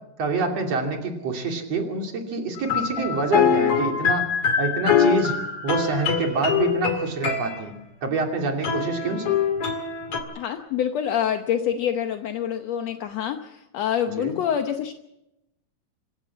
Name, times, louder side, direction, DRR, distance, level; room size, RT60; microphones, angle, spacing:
voice 1, 0.2-4.3 4.6-5.3 5.6-7.7 8.0-9.3 14.1-14.3, right 3 dB, 45° right, 3 dB, 3.6 m, -26 dB
sound 1, 2.6-7.6 8.6-10.2, left 7 dB, 45° left, 2.6 m, -23 dB
voice 2, 10.3-14.9, left 9 dB, 75° left, 6 dB, 1.5 m, -26 dB
26.0 x 14.5 x 7.3 m, 0.86 s
omnidirectional pair, 4.3 m